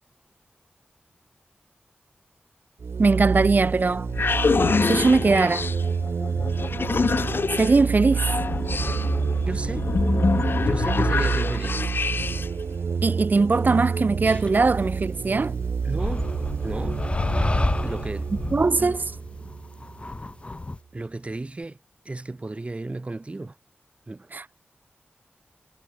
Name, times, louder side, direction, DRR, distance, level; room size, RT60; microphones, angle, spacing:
sound 1, 2.8-20.2, right 5 dB, 90° right, 0.8 m, -28 dB
voice 1, 3.0-4.1 4.9-5.7 7.5-8.2 13.0-15.6 18.5-19.0 24.3-24.4, right 3 dB, 50° right, 1.2 m, -20 dB
sound 2, 3.8-12.6, left 4 dB, 65° left, 2.6 m, -26 dB
voice 2, 9.5-9.9 10.6-11.9 15.8-16.3 16.6-17.0 17.8-18.3 18.8-19.0 20.9-21.8 22.1-23.6 24.1-24.3, right 2 dB, 30° right, 2.1 m, -34 dB
sound 3, 14.3-14.5 16.0-20.8, left 2 dB, 30° left, 1.4 m, -29 dB
wide cardioid pair, 110°, 4 cm